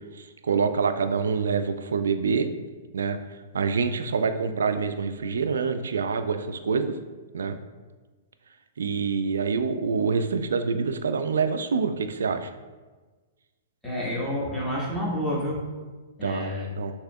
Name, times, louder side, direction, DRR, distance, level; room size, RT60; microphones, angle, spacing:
voice 1, 0.1-2.5 2.9-3.2 3.5-7.0 7.3-7.6 8.8-12.5 16.2-16.9, right 5 dB, 70° right, 9 dB, 0.3 m, -26 dB
voice 2, 13.8-15.7 16.2-16.6, equal, 5° left, -7 dB, 1.4 m, -29 dB
6.5 x 2.8 x 2.3 m, 1.3 s
figure-of-eight pair, 110°, 0 cm